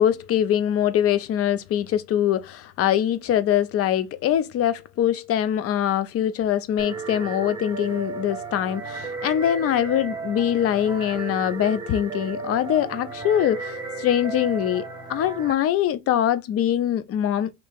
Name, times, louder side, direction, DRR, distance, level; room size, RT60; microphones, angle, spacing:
voice 1, 0.0-14.8 15.1-17.5, left 10 dB, 35° left, 0.5 m, -23 dB
sound 1, 6.8-15.5, right 4 dB, 10° right, 1.0 m, -34 dB
3.1 x 2.8 x 3.3 m
supercardioid pair, 110°, 39 cm